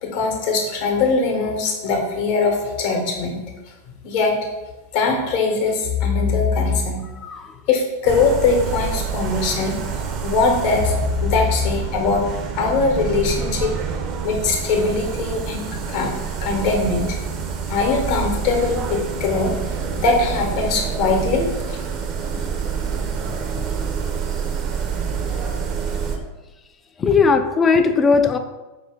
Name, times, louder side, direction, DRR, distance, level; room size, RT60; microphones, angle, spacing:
voice 1, 0.0-3.4 4.0-4.4 4.9-7.0 7.7-11.0 11.2-12.2 12.5-13.7 14.2-16.1 16.4-17.2 17.7-21.8, left 4 dB, 50° left, 1 dB, 1.0 m, -21 dB
voice 2, 7.1-7.6 22.3-22.5 23.3-23.7 24.6-24.8 25.2-25.3 25.9-26.2 27.0-28.4, left 5 dB, 20° left, 8 dB, 0.3 m, -20 dB
sound 1, 8.0-26.2, right 6 dB, 35° right, 0.5 m, -27 dB
4.8 x 2.7 x 3.4 m, 1.1 s
figure-of-eight pair, 90°, 0 cm